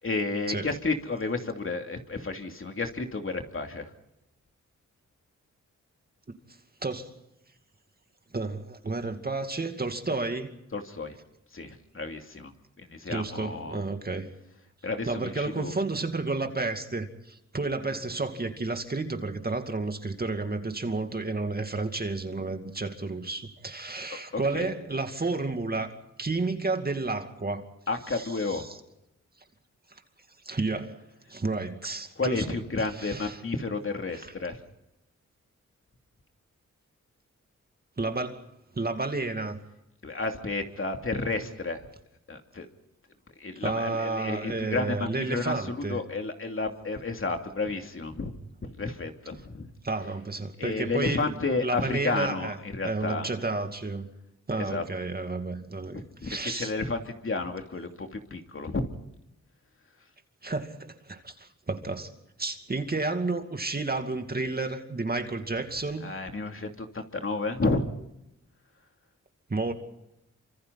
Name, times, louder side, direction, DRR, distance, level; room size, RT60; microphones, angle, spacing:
voice 1, 0.0-3.9 10.7-11.2 11.5-12.5 12.8-13.8 14.8-15.7 24.1-24.7 27.9-28.6 32.2-34.6 40.0-41.8 42.3-42.7 43.4-48.3 48.6-49.7 50.6-53.3 54.6-54.8 55.9-58.9 66.0-67.8, left 3 dB, 45° left, 2.8 m, -31 dB
voice 2, 8.3-10.5 13.1-14.3 15.1-27.6 28.1-28.6 30.4-31.0 31.3-32.4 32.8-33.4 38.0-38.5 38.7-39.6 43.6-46.0 49.8-51.3 51.6-52.6 52.8-54.1 54.5-56.7 60.4-62.1 62.4-66.1 69.5-69.7, right 3 dB, 30° right, 2.4 m, -31 dB
28.0 x 25.5 x 4.1 m
wide cardioid pair, 85°, 30 cm